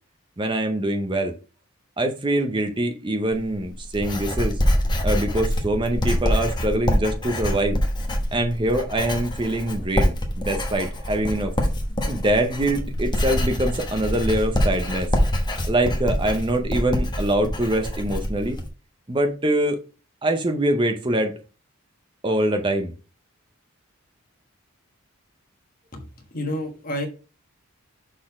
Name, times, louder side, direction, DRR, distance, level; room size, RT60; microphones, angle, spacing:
voice 1, 0.4-1.3 2.0-4.6 5.0-7.8 8.3-11.5 12.1-15.1 15.6-18.6 19.1-19.8 20.2-21.3 22.2-22.9, right 1 dB, 20° right, 0.6 m, -24 dB
Writing, 3.3-18.7, equal, 20° left, 1.1 m, -25 dB
voice 2, 25.9-27.1, left 1 dB, 40° left, 1.4 m, -30 dB
6.4 x 4.0 x 4.7 m
head